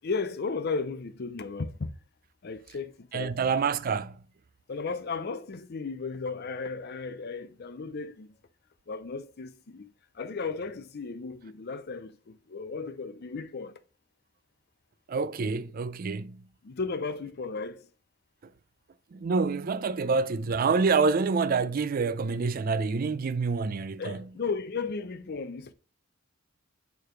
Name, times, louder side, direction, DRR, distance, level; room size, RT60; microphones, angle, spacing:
voice 1, 0.0-1.9 2.4-3.4 4.7-8.3 8.9-9.9 10.2-13.7 16.6-17.9 24.0-25.7, left 4 dB, 50° left, 0.5 m, -35 dB
voice 2, 3.1-4.2 15.1-16.4 19.1-24.2, right 4 dB, 45° right, 0.4 m, -27 dB
6.7 x 3.4 x 4.5 m
head